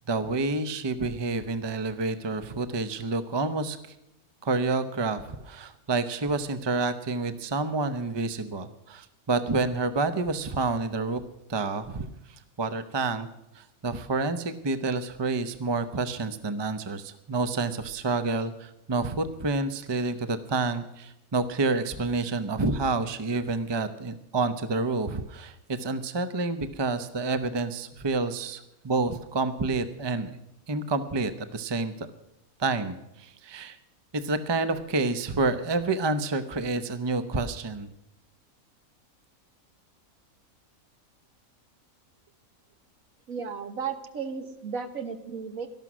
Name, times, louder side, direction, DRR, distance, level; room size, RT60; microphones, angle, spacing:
voice 1, 0.1-3.8 4.4-11.2 11.5-12.1 12.6-13.3 13.5-30.4 30.7-32.1 32.6-33.8 34.1-37.9, right 3 dB, 25° right, 11 dB, 0.7 m, -29 dB
voice 2, 43.3-45.7, right 6 dB, 70° right, 9 dB, 1.7 m, -34 dB
18.0 x 13.0 x 6.2 m, 0.87 s
omnidirectional pair, 1.5 m